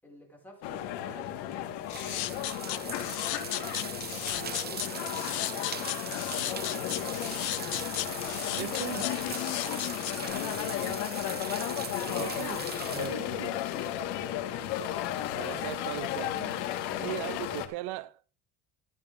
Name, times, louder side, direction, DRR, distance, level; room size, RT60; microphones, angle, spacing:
voice 1, 0.0-1.8 2.3-5.5 9.5-9.8 13.0-13.3, left 1 dB, 5° left, 5.2 m, -51 dB
sound 1, 0.6-17.7, left 11 dB, 90° left, 1.9 m, -34 dB
sound 2, 1.1-14.3, right 7 dB, 25° right, 0.9 m, -41 dB
sound 3, 1.9-10.3, left 17 dB, 65° left, 1.0 m, -35 dB
voice 2, 8.5-9.2 12.1-13.6 15.4-16.7 17.0-18.2, right 17 dB, 75° right, 0.6 m, -38 dB
14.0 x 10.5 x 3.6 m
cardioid pair, 155°, 40 cm